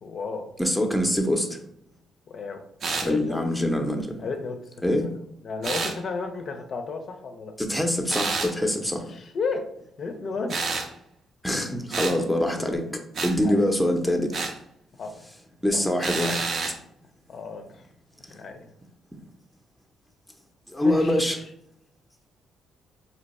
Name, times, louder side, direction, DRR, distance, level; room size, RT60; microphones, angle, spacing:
voice 1, 0.0-0.5 2.3-2.6 3.0-3.4 4.2-4.6 4.9-5.1 5.4-7.5 9.1-9.6 10.0-10.6 13.4-13.6 15.0-15.1 15.7-15.9 17.3-17.8 18.3-18.7 20.8-21.3, left 4 dB, 55° left, 5 dB, 0.5 m, -32 dB
voice 2, 0.6-1.6 3.0-4.2 4.8-5.1 7.6-9.1 11.4-14.3 15.6-16.5 20.7-21.4, left 1 dB, ahead, 3 dB, 0.6 m, -24 dB
sound 1, 2.8-3.1 5.6-6.0 8.1-8.5 10.5-10.9 11.9-12.2 13.1-13.3 14.3-14.6 16.0-16.8, right 4 dB, 55° right, 0.5 m, -28 dB
2.8 x 2.2 x 4.0 m, 0.75 s
cardioid pair, 90°, 0 cm